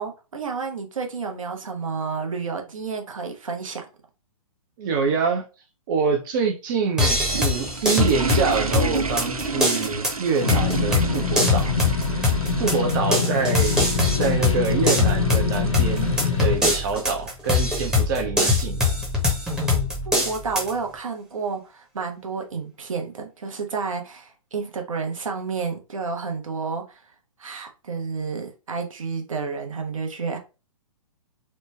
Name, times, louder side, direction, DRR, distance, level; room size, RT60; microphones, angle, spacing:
voice 1, 0.0-3.9 12.6-12.7 13.1-13.2 20.0-27.1 27.4-30.4, right 5 dB, 65° right, 0.8 m, -30 dB
voice 2, 4.8-5.4 5.9-11.7 12.6-13.8 14.2-18.9, right 5 dB, 35° right, 0.5 m, -25 dB
sound 1, 6.9-17.2, right 4 dB, 90° right, 0.5 m, -32 dB
sound 2, 7.0-20.7, left 3 dB, 5° right, 0.8 m, -23 dB
sound 3, 10.4-16.6, left 5 dB, 60° left, 0.7 m, -25 dB
3.1 x 2.1 x 3.2 m
figure-of-eight pair, 125°, 18 cm